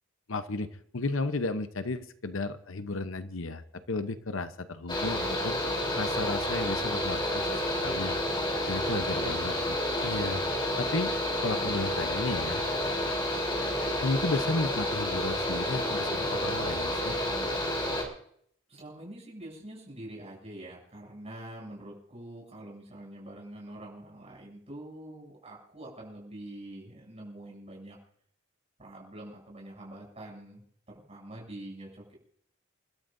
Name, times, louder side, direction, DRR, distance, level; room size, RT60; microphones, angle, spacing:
voice 1, 0.3-5.6 6.0-7.5 7.8-8.2 8.7-9.8 10.0-10.4 10.8-11.1 11.4-12.6 14.0-17.2, left 3 dB, 70° left, 10 dB, 0.9 m, -33 dB
Mechanical fan, 4.9-18.0, left 1 dB, 25° left, 3.7 m, -30 dB
voice 2, 18.7-28.0 28.8-32.1, right 1 dB, 30° right, -2 dB, 7.7 m, -45 dB
29.5 x 13.0 x 2.7 m, 0.64 s
head